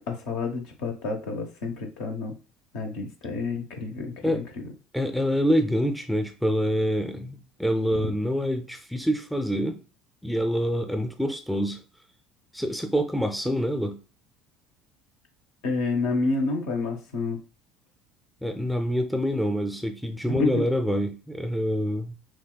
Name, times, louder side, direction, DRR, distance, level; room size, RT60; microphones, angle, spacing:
voice 1, 0.1-2.3 2.7-4.4 8.0-8.1 13.4-13.6 15.6-17.4 20.3-20.6, left 3 dB, 60° left, 1.0 m, -29 dB
voice 2, 4.9-9.8 10.2-11.8 12.5-14.0 18.4-22.2, equal, ahead, 0.6 m, -26 dB
6.0 x 2.3 x 2.2 m
figure-of-eight pair, 65°, 0 cm